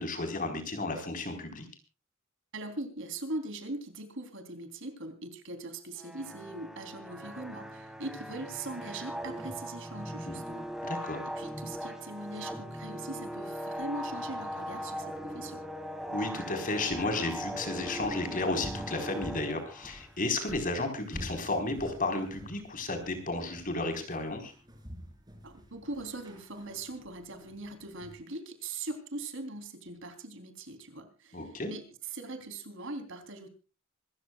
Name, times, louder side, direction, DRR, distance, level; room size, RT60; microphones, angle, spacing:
voice 1, 0.0-1.6 10.3-10.4 10.8-11.2 16.1-24.5 31.3-31.7, left 2 dB, 40° left, 7 dB, 4.4 m, -33 dB
voice 2, 2.5-10.7 11.4-15.6 25.4-33.5, right 2 dB, 65° right, 8 dB, 3.5 m, -41 dB
sound 1, 6.0-20.1, equal, 5° right, 1.7 m, -40 dB
sound 2, 16.9-28.1, equal, 20° right, 4.5 m, -49 dB
26.0 x 14.5 x 2.4 m, 0.33 s
head